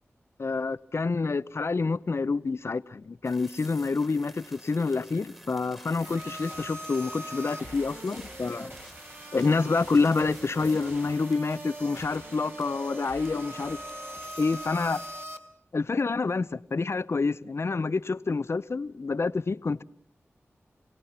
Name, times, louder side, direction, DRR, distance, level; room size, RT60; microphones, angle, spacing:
voice 1, 0.4-8.7 9.3-13.8 14.4-15.0 15.7-19.8, left 4 dB, 60° left, 0.7 m, -27 dB
sound 1, 3.2-15.1, equal, 5° right, 2.9 m, -52 dB
sound 2, 6.0-15.4, right 1 dB, 45° right, 4.1 m, -41 dB
27.5 x 18.0 x 5.8 m
cardioid pair, 45°, 5 cm